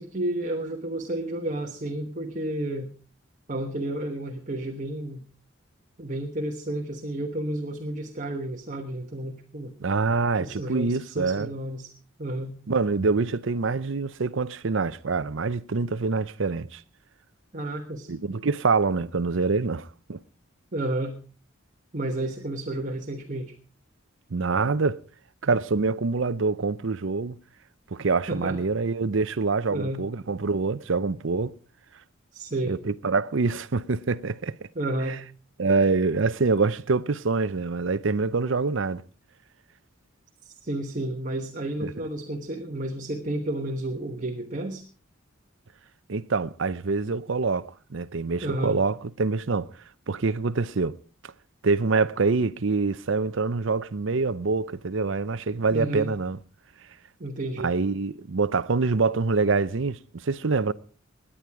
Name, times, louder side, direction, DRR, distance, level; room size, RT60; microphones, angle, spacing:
voice 1, 0.0-2.9 3.5-5.2 6.0-9.7 10.4-11.9 12.2-12.5 17.5-18.1 20.7-21.2 21.9-23.5 28.3-28.6 29.7-30.1 32.3-32.7 34.7-35.2 40.4-44.8 48.4-48.8 55.7-56.1 57.2-57.7, right 1 dB, 40° right, 1.2 m, -31 dB
voice 2, 9.8-11.5 12.7-16.8 18.1-20.2 24.3-25.0 25.4-27.4 27.9-31.5 32.7-34.6 35.1-35.2 35.6-39.0 41.8-41.9 46.1-49.7 50.1-51.0 51.2-51.3 51.6-56.4 57.6-60.7, right 4 dB, 65° right, 0.6 m, -25 dB
18.5 x 10.0 x 4.7 m
head